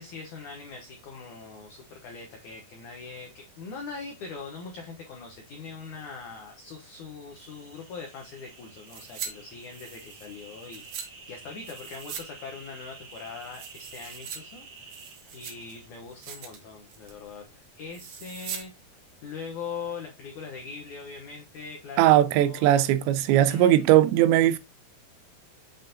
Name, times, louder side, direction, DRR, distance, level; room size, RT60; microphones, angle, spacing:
voice 1, 0.0-15.0 15.3-17.4 17.8-18.7 19.2-22.1 22.3-22.9 23.5-23.8, left 5 dB, 80° left, 1.7 m, -41 dB
sound 1, 7.4-15.9, right 4 dB, 50° right, 2.3 m, -50 dB
sound 2, 8.9-9.3 9.6-11.1 11.6-12.3 12.5-12.6 13.1-14.4 14.8-15.7 16.1-16.6 16.9-17.2 17.9-18.6 18.9-19.0, right 7 dB, 75° right, 1.7 m, -41 dB
voice 2, 22.0-24.6, right 13 dB, 90° right, 2.8 m, -19 dB
7.3 x 5.6 x 2.7 m
omnidirectional pair, 5.0 m